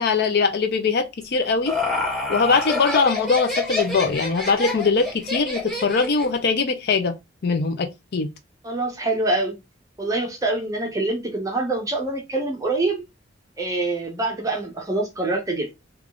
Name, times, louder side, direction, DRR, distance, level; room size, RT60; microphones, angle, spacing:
voice 1, 0.0-1.8 2.3-7.1 7.4-8.3, left 4 dB, 55° left, 0.5 m, -21 dB
Laughter, 1.2-6.4, left 3 dB, 5° left, 1.6 m, -27 dB
voice 2, 8.6-9.6 10.0-13.0 13.6-15.7, right 2 dB, 20° right, 0.7 m, -25 dB
3.5 x 2.3 x 3.6 m
head